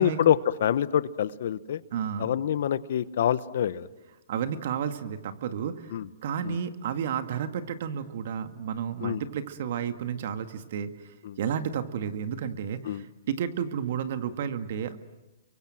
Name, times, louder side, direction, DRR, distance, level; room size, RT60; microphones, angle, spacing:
voice 1, 0.0-1.8 2.2-3.9 5.9-6.1 6.4-6.6 9.0-9.2 11.2-11.4 12.9-13.0, left 10 dB, 60° left, 16 dB, 1.1 m, -26 dB
voice 2, 1.9-2.4 4.3-5.9 6.2-15.0, right 8 dB, 55° right, 9 dB, 2.0 m, -32 dB
30.0 x 23.5 x 7.8 m, 1.0 s
hypercardioid pair, 150°, 0 cm